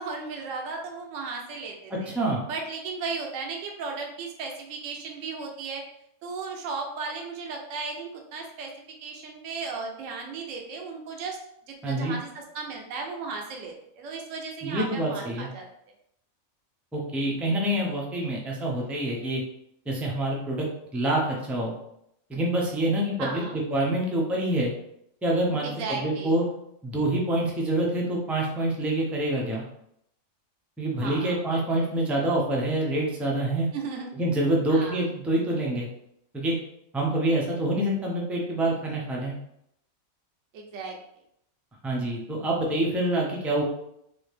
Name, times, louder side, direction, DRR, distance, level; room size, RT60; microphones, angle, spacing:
voice 1, 0.0-2.1 2.4-5.8 6.2-8.7 9.0-11.4 11.7-15.7 23.2-23.6 25.6-26.4 30.9-31.4 33.7-34.2 34.7-35.0 40.5-41.0, right 4 dB, 70° right, 2 dB, 1.0 m, -35 dB
voice 2, 2.1-2.4 11.8-12.2 14.6-15.5 16.9-19.4 19.9-20.7 20.9-21.7 22.3-24.7 25.2-26.4 26.8-29.6 30.8-33.7 34.2-35.9 36.3-36.6 36.9-39.3 41.8-43.6, right 1 dB, ahead, -2 dB, 0.3 m, -26 dB
4.0 x 2.7 x 3.3 m, 0.76 s
omnidirectional pair, 1.4 m